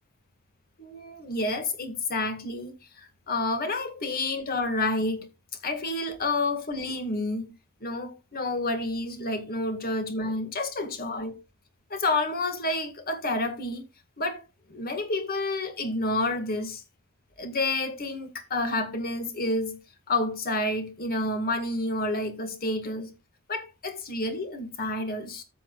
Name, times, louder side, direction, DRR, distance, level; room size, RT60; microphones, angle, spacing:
voice 1, 0.8-5.3 5.6-7.5 7.8-11.4 11.9-13.8 14.2-14.4 14.7-16.8 17.4-19.8 20.1-23.1 23.5-25.4, left 2 dB, 40° left, 1.9 m, -29 dB
13.0 x 8.4 x 2.4 m
head